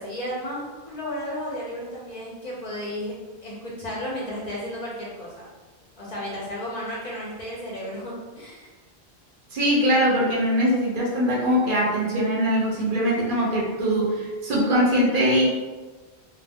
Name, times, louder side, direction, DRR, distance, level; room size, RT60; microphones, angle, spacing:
voice 1, 0.0-3.1 3.4-5.5 6.0-8.7, equal, 45° left, -6 dB, 0.7 m, -33 dB
voice 2, 9.5-15.5, equal, 60° right, -3 dB, 0.7 m, -22 dB
2.3 x 2.1 x 3.4 m, 1.3 s
omnidirectional pair, 1.1 m